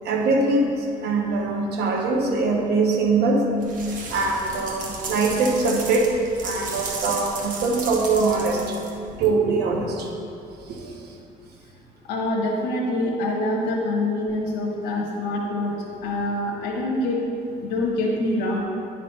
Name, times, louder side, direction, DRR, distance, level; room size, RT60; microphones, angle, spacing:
voice 1, 0.0-3.4 4.1-6.2 6.4-8.8 9.2-10.1 10.6-10.9, right 3 dB, 75° right, 1 dB, 1.1 m, -22 dB
sound 1, 3.6-9.2, right 3 dB, 50° right, 1.5 m, -34 dB
voice 2, 12.1-15.7 16.0-17.2 17.6-18.6, left 1 dB, 90° left, -3 dB, 1.1 m, -25 dB
10.5 x 4.2 x 5.5 m, 2.6 s
cardioid pair, 110°, 17 cm